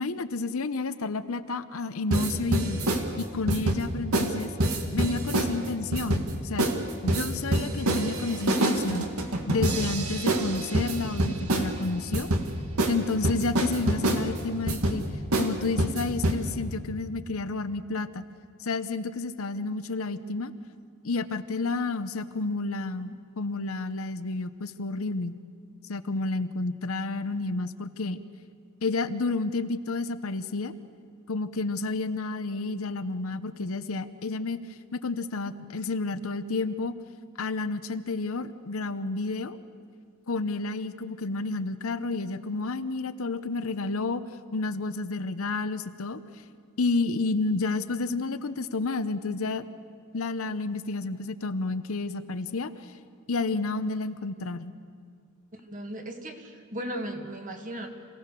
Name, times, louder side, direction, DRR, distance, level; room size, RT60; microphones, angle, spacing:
voice 1, 0.0-2.8 3.2-4.5 4.9-6.7 7.0-9.1 9.5-12.3 12.9-15.0 15.3-18.2 18.6-20.5 21.0-25.4 25.9-28.2 28.8-30.7 31.3-34.6 34.9-36.9 37.4-39.6 40.3-44.2 44.5-46.2 46.8-49.7 50.1-52.7 53.3-54.7, left 3 dB, 70° left, 11 dB, 0.8 m, -30 dB
sound 1, 2.1-3.0 3.5-3.8 4.1-4.3 4.6-5.5 5.9-6.3 6.6-6.8 7.1-11.7 12.1-12.4 12.8-12.9 13.2-14.2 14.7-15.0 15.3-15.5 15.8-16.4, right 1 dB, 85° right, 2.0 m, -25 dB
voice 2, 55.5-57.9, right 1 dB, 40° right, 4 dB, 1.9 m, -36 dB
27.0 x 17.0 x 6.8 m, 2.2 s
head